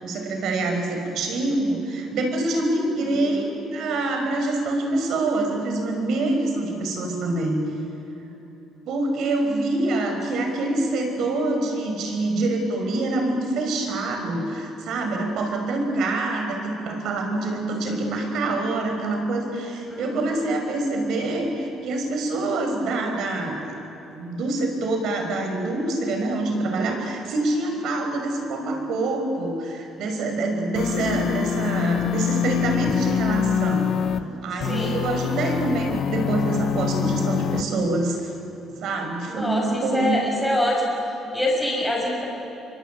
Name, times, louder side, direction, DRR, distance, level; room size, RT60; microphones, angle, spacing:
voice 1, 0.0-7.6 8.9-23.6 24.1-33.9 34.4-38.3 38.8-40.2, right 2 dB, 60° right, 4 dB, 5.7 m, -25 dB
voice 2, 3.1-3.6 9.9-10.2 19.9-20.4 34.6-35.0 39.3-40.9 41.3-42.3, left 1 dB, ahead, -3 dB, 6.2 m, -26 dB
sound 1, 30.7-34.2 34.6-37.6, left 9 dB, 50° left, 1.1 m, -25 dB
27.5 x 23.5 x 9.2 m, 2.9 s
cardioid pair, 150°, 0 cm